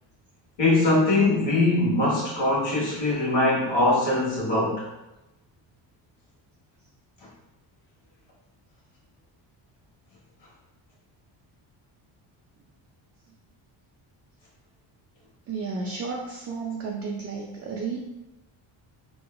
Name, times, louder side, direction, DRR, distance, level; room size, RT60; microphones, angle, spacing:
voice 1, 0.6-4.8, left 2 dB, 60° left, -5 dB, 1.4 m, -22 dB
voice 2, 15.5-18.0, right 4 dB, 35° right, -2 dB, 0.4 m, -32 dB
3.0 x 2.2 x 2.3 m, 0.98 s
cardioid pair, 90°, 50 cm